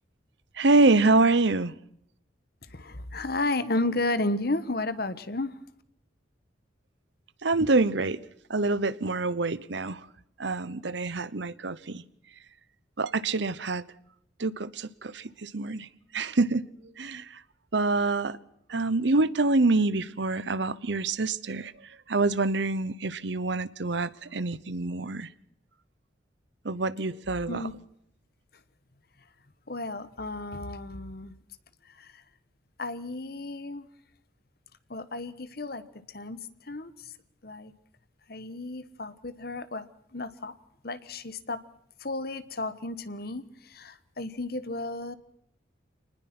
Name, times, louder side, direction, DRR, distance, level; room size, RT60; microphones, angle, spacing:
voice 1, 0.6-1.7 7.4-8.2 8.5-10.0 10.4-12.0 13.0-13.8 14.4-16.7 17.0-17.4 17.7-18.4 18.7-21.7 22.1-25.3 26.6-27.6, right 3 dB, 70° right, 0.9 m, -26 dB
voice 2, 2.7-5.6 27.5-27.7 29.7-31.3 31.8-32.2 32.8-33.9 34.9-37.1 37.4-37.7 38.3-40.5 40.8-41.6 42.0-45.2, left 2 dB, 55° left, 1.3 m, -33 dB
25.0 x 20.0 x 6.1 m
head